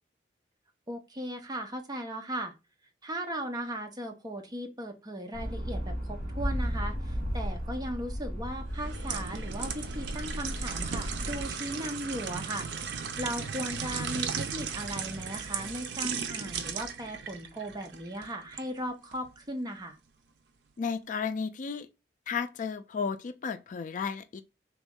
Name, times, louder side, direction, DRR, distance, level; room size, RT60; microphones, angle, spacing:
voice 1, 0.9-2.5 3.0-20.0, equal, 25° right, 0.7 m, -37 dB
sound 1, 5.3-11.5, equal, 50° right, 2.1 m, -35 dB
sound 2, 8.7-18.7 19.1-19.3, right 6 dB, 75° right, 0.5 m, -36 dB
voice 2, 20.8-21.9 22.3-24.4, left 5 dB, 45° left, 0.3 m, -33 dB
3.5 x 3.1 x 3.5 m
head